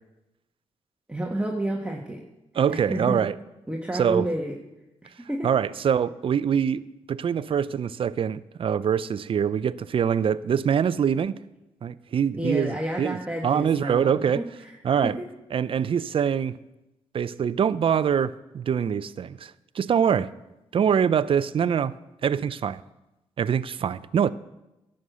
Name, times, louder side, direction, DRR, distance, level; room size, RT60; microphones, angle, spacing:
voice 1, 1.1-2.2 2.7-3.2 3.7-4.6 5.3-5.5 12.4-15.1, right 1 dB, 10° right, 0 dB, 1.4 m, -30 dB
voice 2, 2.6-3.3 4.0-4.3 5.4-6.8 7.1-11.3 11.8-13.2 13.4-14.4 14.8-15.2 15.5-16.6 17.1-20.3 20.7-21.9 22.2-22.8 23.4-24.3, right 8 dB, 55° right, 16 dB, 0.5 m, -24 dB
11.0 x 6.5 x 7.9 m, 0.96 s
cardioid pair, 60°, 11 cm